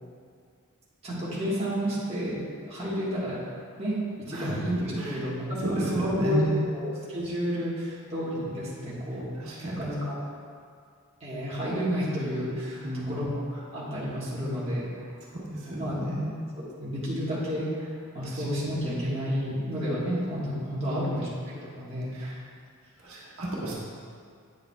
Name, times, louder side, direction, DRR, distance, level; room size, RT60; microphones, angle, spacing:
voice 1, 1.0-3.4 3.8-3.9 4.3-6.4 6.7-10.1 11.2-15.1 15.7-16.0 16.6-22.1, equal, 30° right, -9 dB, 1.5 m, -31 dB
voice 2, 5.6-6.7 9.4-9.9 12.8-13.3 15.3-16.4 18.3-18.4 20.9-21.1 22.1-22.4 23.0-23.7, right 1 dB, 75° right, -6 dB, 1.5 m, -32 dB
9.2 x 6.9 x 2.3 m, 2.2 s
head